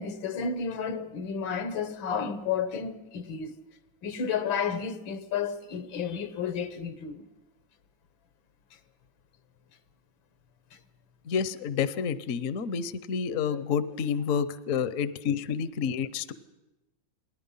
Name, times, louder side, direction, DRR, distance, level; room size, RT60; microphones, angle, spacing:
voice 1, 0.0-3.6 4.0-7.3, left 6 dB, 80° left, 1.9 m, -32 dB
voice 2, 11.3-16.3, left 7 dB, 55° left, 1.0 m, -29 dB
28.5 x 19.0 x 5.6 m
omnidirectional pair, 2.1 m